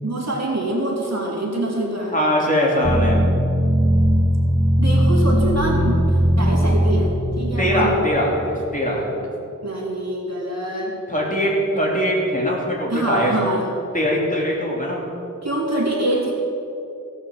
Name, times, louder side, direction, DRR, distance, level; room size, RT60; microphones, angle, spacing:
voice 1, 0.0-2.2 4.8-8.0 9.6-11.0 12.9-13.7 15.4-16.3, right 1 dB, 55° right, -3 dB, 3.4 m, -25 dB
voice 2, 2.1-3.2 5.5-5.9 7.6-9.2 11.1-13.6 13.9-15.0, equal, 25° left, -4 dB, 3.4 m, -21 dB
sound 1, 2.8-8.6, equal, 5° right, 1.0 m, -19 dB
16.5 x 6.3 x 7.3 m, 2.8 s
wide cardioid pair, 50°, 32 cm